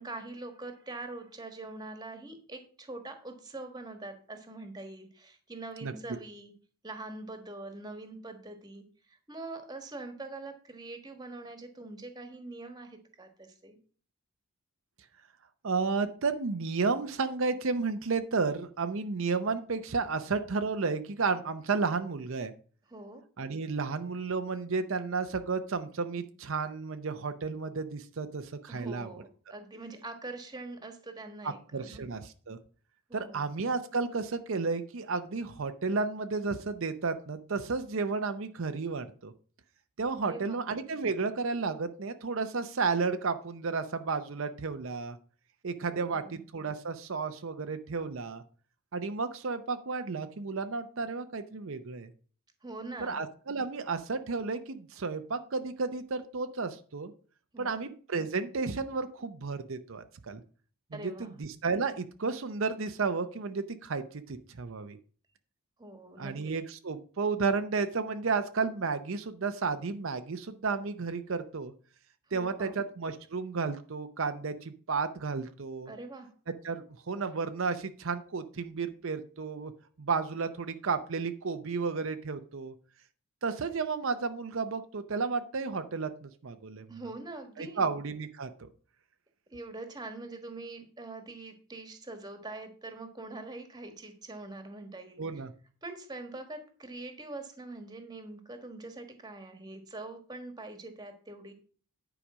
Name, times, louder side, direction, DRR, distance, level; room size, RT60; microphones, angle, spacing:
voice 1, 0.0-6.5 6.8-13.8 22.9-23.2 28.7-32.0 33.1-33.4 40.2-40.6 45.9-46.4 52.6-53.2 57.5-57.8 60.9-61.4 65.8-66.5 72.3-72.8 75.9-76.3 86.9-87.9 89.5-95.4 95.8-101.5, right 2 dB, 20° right, 7 dB, 1.4 m, -44 dB
voice 2, 15.6-22.5 23.4-29.1 31.4-32.6 33.1-39.3 40.0-45.2 45.6-48.4 48.9-52.1 53.0-57.1 57.6-60.4 60.9-65.0 66.2-71.7 72.3-75.9 76.6-79.7 80.0-82.7 83.4-86.9 87.6-88.7 95.2-95.5, right 4 dB, 60° right, 8 dB, 0.6 m, -32 dB
10.0 x 5.0 x 6.1 m, 0.42 s
head